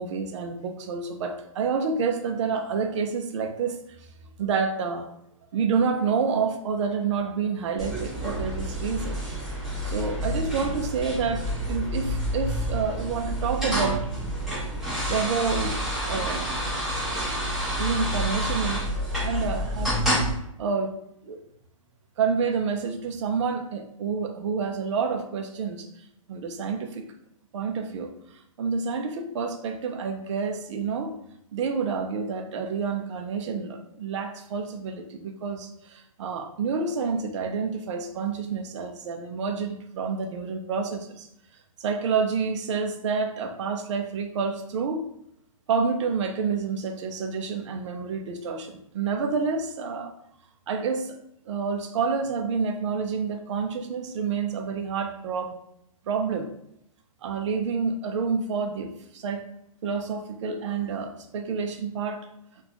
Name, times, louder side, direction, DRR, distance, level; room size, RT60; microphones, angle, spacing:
voice 1, 0.0-3.8 4.4-5.1 5.5-9.2 9.8-14.1 14.5-14.6 15.1-15.8 16.1-16.5 17.8-20.0 20.6-21.0 21.2-21.4 22.2-25.9 26.3-27.1 27.5-31.1 31.5-41.3 41.8-45.0 45.7-50.1 50.7-51.2 51.5-55.6 56.1-56.5 57.2-59.4 59.8-62.3, right 5 dB, 55° right, 5 dB, 0.5 m, -28 dB
sound 1, 7.8-20.3, equal, ahead, 1.2 m, -28 dB
3.9 x 2.4 x 2.8 m, 0.78 s
hypercardioid pair, 140°, 18 cm